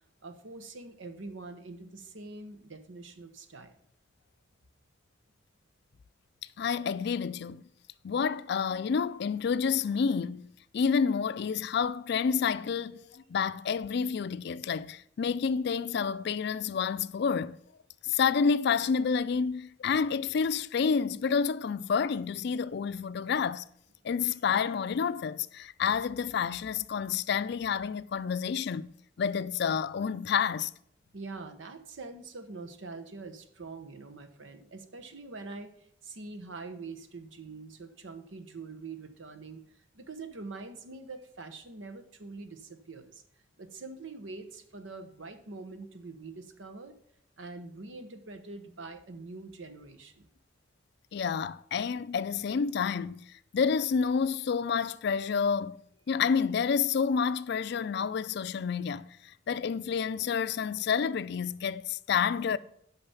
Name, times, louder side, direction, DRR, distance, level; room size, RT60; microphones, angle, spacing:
voice 1, 0.2-3.7 31.1-43.2 43.6-47.0 47.4-50.3, right 3 dB, 90° right, 1.0 m, -44 dB
voice 2, 6.6-7.6 8.0-10.5 10.7-17.6 18.0-23.6 24.0-28.9 29.2-30.7 51.1-53.3 53.5-55.8 56.1-59.1 59.5-62.6, left 6 dB, 60° left, 0.4 m, -29 dB
8.9 x 5.9 x 5.5 m
head